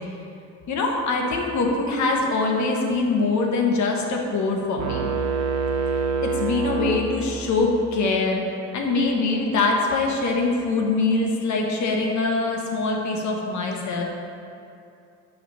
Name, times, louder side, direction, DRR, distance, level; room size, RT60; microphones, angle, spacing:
voice 1, 0.7-5.0 6.2-8.4 8.7-14.0, left 3 dB, 70° left, 0 dB, 1.2 m, -23 dB
sound 1, 4.8-7.7, right 5 dB, 65° right, 0.6 m, -26 dB
8.5 x 3.4 x 5.4 m, 2.6 s
cardioid pair, 90°, 30 cm